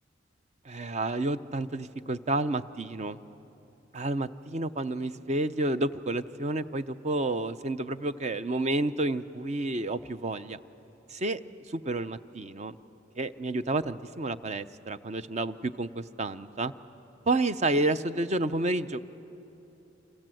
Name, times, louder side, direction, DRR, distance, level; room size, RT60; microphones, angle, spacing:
voice 1, 0.7-3.2 3.9-10.6 11.1-11.4 11.7-12.8 13.2-16.7 17.3-19.0, right 2 dB, 35° right, 12 dB, 0.7 m, -30 dB
28.5 x 26.5 x 7.8 m, 3.0 s
head